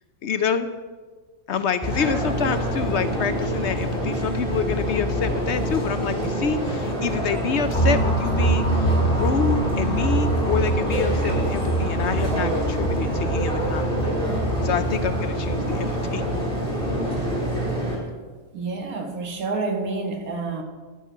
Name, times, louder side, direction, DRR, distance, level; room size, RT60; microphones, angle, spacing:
voice 1, 0.2-0.7 1.5-14.1 14.6-16.2, left 6 dB, 60° left, 11 dB, 0.8 m, -27 dB
sound 1, 1.8-18.0, equal, 20° right, 3.4 m, -26 dB
sound 2, 7.7-15.8, right 2 dB, 35° left, 1.6 m, -25 dB
voice 2, 18.5-20.6, right 3 dB, 85° right, 4 dB, 1.9 m, -28 dB
11.5 x 10.0 x 5.5 m, 1.4 s
omnidirectional pair, 1.5 m